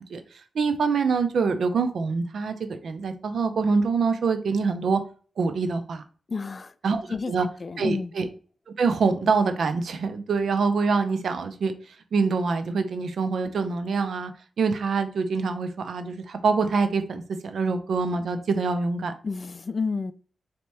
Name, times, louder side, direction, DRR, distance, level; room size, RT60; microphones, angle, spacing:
voice 1, 0.5-5.0 5.4-6.0 6.8-7.5 7.8-8.3 8.8-11.7 12.1-14.3 14.6-19.1, right 4 dB, 75° right, 0.5 m, -25 dB
voice 2, 6.3-6.7 7.1-8.1 19.2-20.1, left 4 dB, 45° left, 0.3 m, -30 dB
4.1 x 2.9 x 3.4 m
cardioid pair, 60°, 0 cm